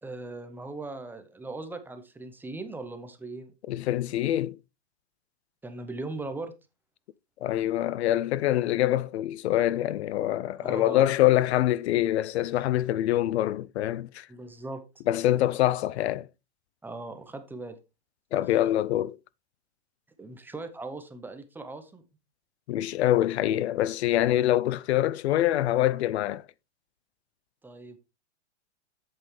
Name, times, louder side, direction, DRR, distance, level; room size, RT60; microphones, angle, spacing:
voice 1, 0.0-3.5 5.6-6.5 10.6-11.1 14.3-14.8 16.8-17.8 20.2-22.0 27.6-28.0, right 2 dB, 5° right, 0.7 m, -39 dB
voice 2, 3.7-4.6 7.4-14.3 15.1-16.3 18.3-19.2 22.7-26.4, left 13 dB, 70° left, 0.5 m, -25 dB
7.9 x 7.5 x 3.2 m
hypercardioid pair, 145°, 34 cm